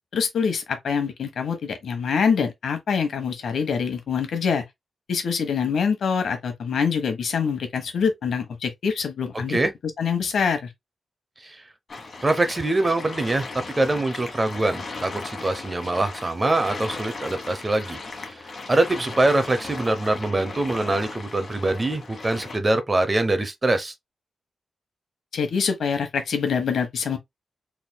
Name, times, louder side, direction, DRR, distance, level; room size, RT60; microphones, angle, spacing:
voice 1, 0.1-4.6 5.1-9.6 10.0-10.7 25.3-27.2, left 6 dB, 80° left, 1.2 m, -25 dB
sound 1, 11.9-22.6, left 3 dB, 45° left, 1.3 m, -37 dB
voice 2, 12.2-18.0 18.3-18.4 18.7-23.9, right 2 dB, 25° right, 0.7 m, -23 dB
4.4 x 3.5 x 2.2 m
wide cardioid pair, 120°, 0 cm